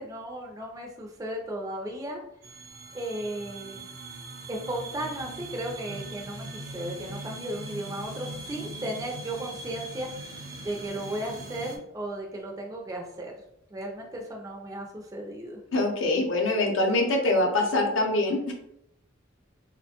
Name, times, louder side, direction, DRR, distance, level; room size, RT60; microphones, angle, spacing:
voice 1, 0.0-2.2 2.9-3.8 4.5-6.5 6.7-10.1 10.6-13.3 13.7-15.6, right 1 dB, 15° right, 0 dB, 0.3 m, -35 dB
sound 1, 2.4-11.8, right 2 dB, 75° right, 0.6 m, -41 dB
voice 2, 15.7-18.5, left 2 dB, 75° left, 2 dB, 0.6 m, -24 dB
3.0 x 2.1 x 2.8 m, 0.78 s
head